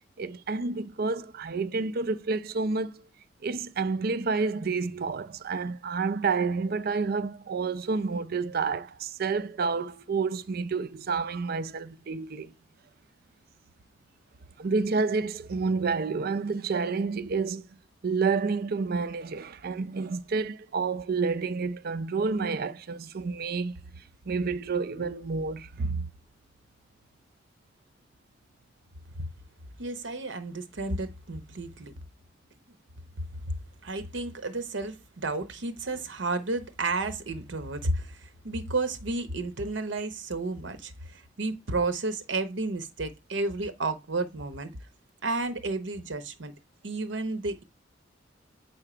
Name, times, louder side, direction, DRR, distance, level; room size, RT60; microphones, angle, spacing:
voice 1, 0.2-3.0 3.4-12.5 14.6-17.6 18.0-23.7 24.3-26.1, right 4 dB, 55° right, 0.5 m, -29 dB
voice 2, 29.8-31.9 33.8-44.7 45.2-46.5 46.8-47.6, right 3 dB, 80° right, 0.8 m, -32 dB
7.6 x 4.4 x 5.0 m
head